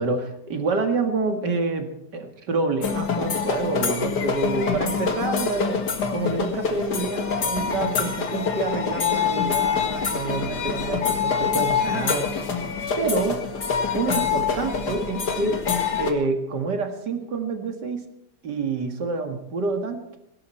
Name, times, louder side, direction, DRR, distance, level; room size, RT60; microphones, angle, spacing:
voice 1, 0.0-5.8 6.1-12.4 13.0-13.4 13.9-15.6 16.0-18.1 18.4-20.2, right 3 dB, 90° right, 5 dB, 2.6 m, -27 dB
sound 1, 2.8-16.1, left 6 dB, 75° left, 2.4 m, -25 dB
18.5 x 17.5 x 4.5 m, 0.82 s
omnidirectional pair, 1.8 m